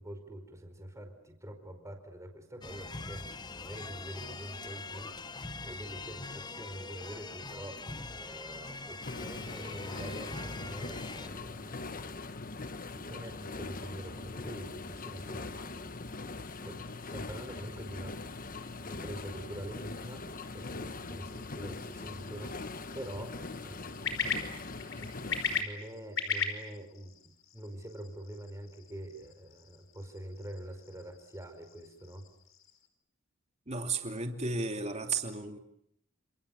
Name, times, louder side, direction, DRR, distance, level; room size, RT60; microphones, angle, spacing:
voice 1, 0.0-5.3 5.6-7.9 8.1-12.1 12.9-15.9 16.6-18.2 18.8-24.5 25.0-25.1 25.5-27.1 27.5-32.2, right 1 dB, 15° right, 6 dB, 4.9 m, -45 dB
sound 1, 2.6-11.3, left 3 dB, 20° left, 1.1 m, -43 dB
sound 2, 9.0-25.6, left 3 dB, 45° left, 1.5 m, -41 dB
sound 3, 21.2-32.9, left 5 dB, 70° left, 5.0 m, -40 dB
voice 2, 33.7-35.6, right 3 dB, 35° right, 5 dB, 2.8 m, -34 dB
29.5 x 28.0 x 7.2 m, 0.72 s
head